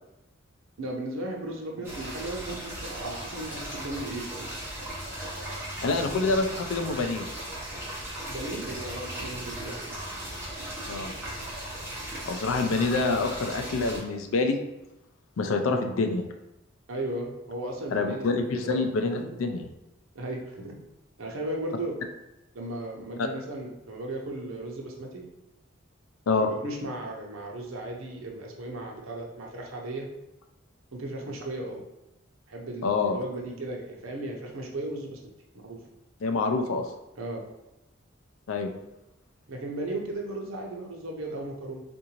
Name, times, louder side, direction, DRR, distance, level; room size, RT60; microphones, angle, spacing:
voice 1, 0.8-4.5 8.3-10.0 15.7-15.8 16.9-18.9 20.1-20.8 21.2-22.0 22.5-25.2 26.4-30.1 30.9-31.8 32.5-35.8 37.2-37.4 39.5-41.8, right 1 dB, 90° right, 0 dB, 0.7 m, -36 dB
sound 1, 1.8-14.0, right 1 dB, 10° right, 0.9 m, -37 dB
voice 2, 5.8-7.3 10.9-11.1 12.3-14.6 15.4-16.2 17.9-19.6 23.2-23.3 26.3-26.5 32.8-33.2 36.2-36.8 38.5-38.7, left 3 dB, 85° left, 6 dB, 0.4 m, -26 dB
3.7 x 2.6 x 2.9 m, 0.93 s
head